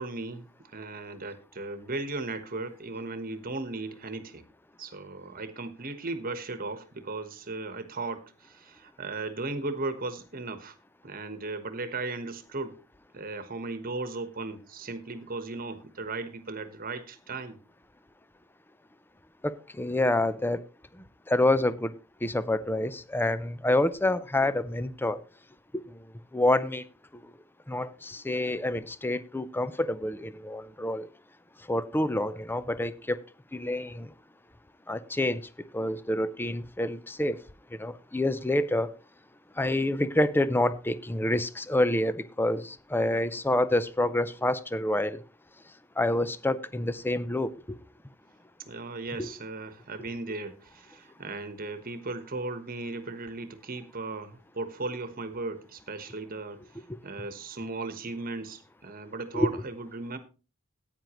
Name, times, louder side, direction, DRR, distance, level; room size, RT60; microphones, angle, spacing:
voice 1, 0.0-4.4 4.8-10.7 11.0-12.8 13.1-17.6 48.6-56.6 57.0-60.2, right 3 dB, 45° right, 1.3 m, -36 dB
voice 2, 19.4-20.6 21.3-21.9 22.2-25.2 26.3-26.8 27.7-27.9 28.3-31.0 31.7-33.2 33.5-34.1 34.9-35.4 35.7-37.4 37.8-38.9 39.6-42.6 42.9-45.2 46.0-47.8 49.2-49.3 59.3-59.5, left 1 dB, 10° left, 0.5 m, -27 dB
15.0 x 9.2 x 3.0 m
head